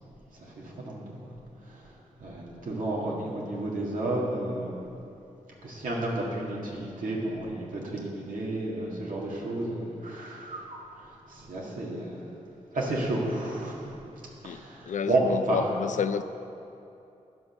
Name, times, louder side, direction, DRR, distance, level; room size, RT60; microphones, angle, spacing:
voice 1, 0.4-1.3 2.2-4.8 5.6-10.8 11.3-12.1 12.7-13.9 14.4-15.6, right 2 dB, 90° right, -4 dB, 1.8 m, -31 dB
voice 2, 14.4-16.2, left 7 dB, 70° left, 12 dB, 0.4 m, -30 dB
11.0 x 6.0 x 5.3 m, 2.8 s
cardioid pair, 75°, 13 cm